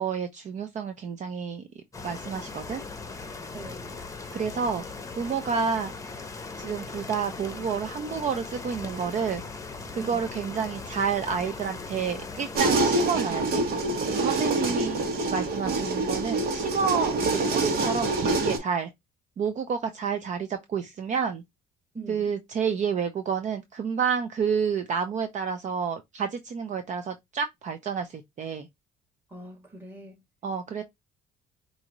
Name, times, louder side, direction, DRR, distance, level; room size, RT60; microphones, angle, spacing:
voice 1, 0.0-1.7 2.0-2.8 4.3-4.8 5.2-5.9 6.6-9.4 9.9-13.6 14.1-15.0 15.3-18.9 19.4-21.4 22.1-28.7 30.4-30.8, right 6 dB, 45° right, 0.6 m, -29 dB
sound 1, 1.9-12.9, left 4 dB, 20° left, 0.9 m, -39 dB
voice 2, 3.5-3.9 10.0-10.3 21.9-22.3 29.3-30.2, right 2 dB, 10° right, 2.3 m, -42 dB
sound 2, 12.6-18.6, right 2 dB, 65° right, 1.3 m, -26 dB
4.8 x 2.7 x 3.0 m
cardioid pair, 110°, 17 cm